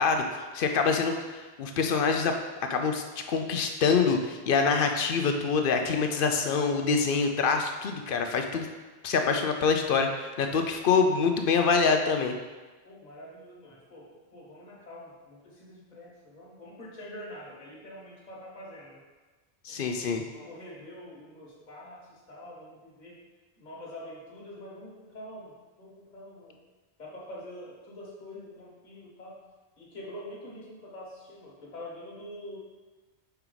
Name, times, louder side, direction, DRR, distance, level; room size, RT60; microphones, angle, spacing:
voice 1, 0.0-2.3 2.7-8.7 9.0-12.3 19.6-20.2, left 5 dB, 60° left, 5 dB, 0.7 m, -25 dB
voice 2, 12.8-14.1 14.3-19.0 19.7-19.9 20.3-23.2 23.6-25.5 25.8-26.6 27.0-29.4 29.8-32.6, left 1 dB, 40° left, -6 dB, 1.5 m, -45 dB
5.6 x 4.5 x 3.9 m, 1.3 s
omnidirectional pair, 1.1 m